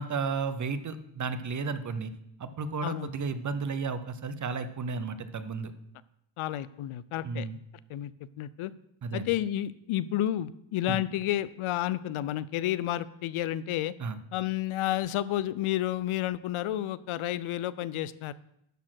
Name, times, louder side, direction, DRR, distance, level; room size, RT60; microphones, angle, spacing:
voice 1, 0.0-2.1 2.4-5.7 7.2-7.6 9.0-9.2 10.9-11.0 14.0-14.2, right 4 dB, 40° right, 12 dB, 0.7 m, -33 dB
voice 2, 6.4-7.5 7.9-8.1 8.4-8.7 9.1-13.9 14.3-18.3, left 13 dB, 80° left, 17 dB, 0.6 m, -31 dB
12.0 x 4.3 x 6.3 m, 0.78 s
cardioid pair, 125°, 49 cm